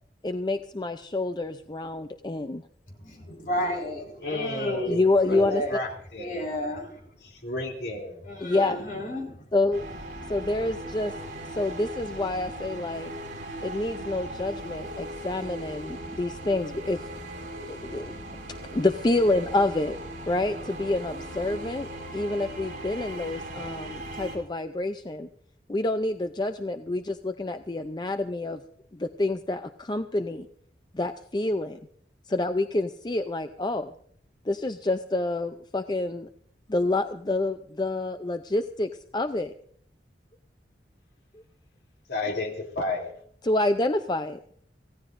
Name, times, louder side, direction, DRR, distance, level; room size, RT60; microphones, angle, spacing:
voice 1, 0.2-2.6 4.9-5.6 8.4-8.9 9.5-9.9 10.3-11.1 11.5-13.1 13.6-17.0 17.7-18.2 18.7-20.0 20.3-25.3 25.7-28.6 28.9-30.5 30.9-31.8 32.3-33.9 34.5-36.3 36.7-39.5 41.3-41.4 43.4-44.4, left 2 dB, 25° left, 0.5 m, -27 dB
voice 2, 3.0-4.9 5.3-5.8 6.2-7.0 8.2-9.4, left 1 dB, 50° left, 4.6 m, -31 dB
voice 3, 4.2-5.4 5.7-6.5 7.2-8.2 23.5-23.7 42.1-43.1, left 2 dB, 65° left, 3.1 m, -32 dB
sound 1, 9.7-24.4, right 1 dB, 45° right, 5.8 m, -38 dB
26.5 x 16.5 x 2.6 m
head